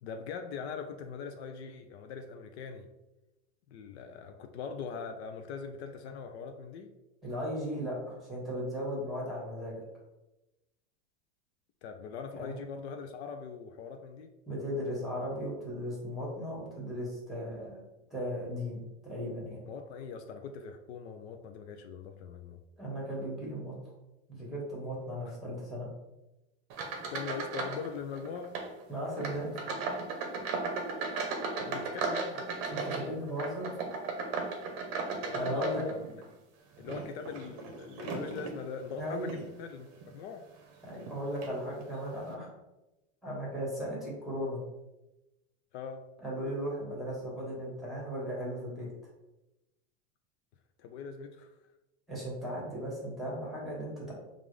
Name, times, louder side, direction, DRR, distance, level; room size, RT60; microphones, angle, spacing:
voice 1, 0.0-2.9 3.7-6.9 11.8-14.3 19.7-22.6 25.2-25.3 27.1-28.5 31.6-32.5 35.1-36.2 36.8-39.9 40.1-40.4 45.7-46.1 50.8-51.6, left 5 dB, 65° left, 6 dB, 0.5 m, -41 dB
voice 2, 7.2-9.8 12.3-12.6 14.5-17.8 18.1-19.6 22.8-23.7 24.3-25.9 28.9-29.5 32.7-33.7 35.3-35.8 39.0-39.3 40.8-42.5 43.2-44.6 46.2-48.9 52.1-54.1, equal, ahead, -4 dB, 1.3 m, -36 dB
sound 1, 26.7-27.9 28.1-28.7 29.2-36.3 36.8-38.6 39.2-39.5 40.0-40.1 41.0-41.1 41.4-41.6, right 4 dB, 40° right, 0.7 m, -36 dB
5.3 x 2.5 x 3.2 m, 0.98 s
supercardioid pair, 155°, 35 cm